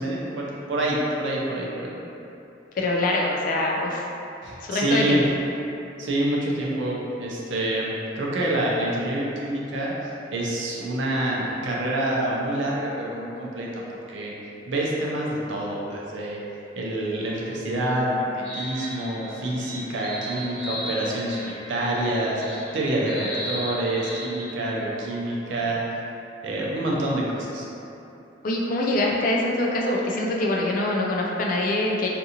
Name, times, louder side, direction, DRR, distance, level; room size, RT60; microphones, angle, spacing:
voice 1, 0.0-2.0 4.4-5.2 6.0-13.8 14.1-14.3 14.7-16.4 16.8-25.8 26.4-27.7, right 1 dB, 70° right, -4 dB, 0.5 m, -27 dB
voice 2, 2.8-4.1 4.6-5.2 28.4-32.1, left 2 dB, 45° left, -2 dB, 0.3 m, -24 dB
sound 1, 17.2-25.1, equal, 5° left, 1.0 m, -37 dB
2.6 x 2.4 x 2.8 m, 2.9 s
head